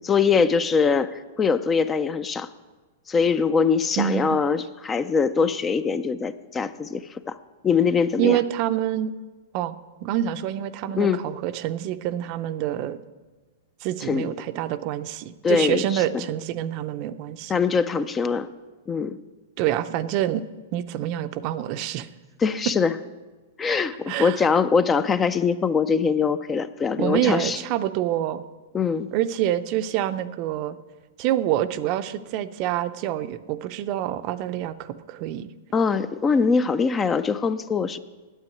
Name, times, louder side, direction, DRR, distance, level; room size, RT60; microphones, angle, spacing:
voice 1, 0.0-2.5 3.1-7.4 7.6-8.4 11.0-11.2 14.0-14.3 15.4-16.0 17.5-18.5 18.9-19.2 22.4-22.9 23.6-27.6 28.7-29.1 35.7-38.0, left 5 dB, 15° left, 14 dB, 0.4 m, -22 dB
voice 2, 4.0-4.4 8.2-9.1 9.5-13.0 13.8-17.5 19.6-20.4 20.7-22.1 24.1-24.4 27.0-28.4 29.1-30.8 31.2-35.5, right 12 dB, 40° right, 12 dB, 0.5 m, -26 dB
9.0 x 8.4 x 9.1 m, 1.3 s
hypercardioid pair, 140°, 0 cm